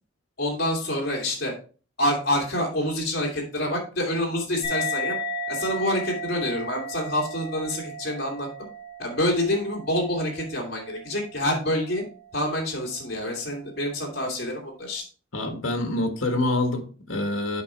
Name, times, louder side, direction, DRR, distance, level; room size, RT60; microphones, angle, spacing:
voice 1, 0.4-1.5 2.0-5.2 5.5-8.5 9.0-12.0 12.3-15.0, left 1 dB, 50° left, 2.5 m, -27 dB
sound 1, 4.6-11.5, left 1 dB, 25° left, 4.9 m, -34 dB
voice 2, 15.3-17.6, left 2 dB, 65° left, 1.6 m, -26 dB
8.3 x 5.0 x 4.4 m
head